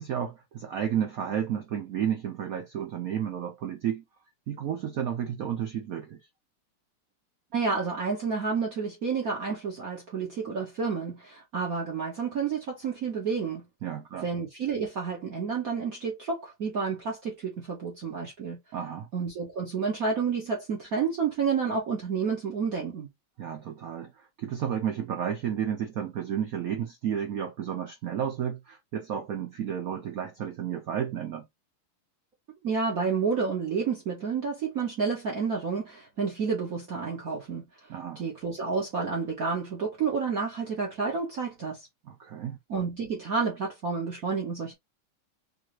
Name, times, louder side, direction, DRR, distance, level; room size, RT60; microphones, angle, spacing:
voice 1, 0.0-4.0 4.5-6.3 13.8-14.3 18.7-19.1 23.4-31.5 37.9-38.2 42.0-42.6, right 9 dB, 75° right, 0.8 m, -32 dB
voice 2, 7.5-13.6 14.2-18.6 19.1-23.1 32.6-37.6 38.2-41.9 42.7-44.7, right 5 dB, 50° right, 1.3 m, -30 dB
3.9 x 2.7 x 3.0 m
omnidirectional pair, 2.4 m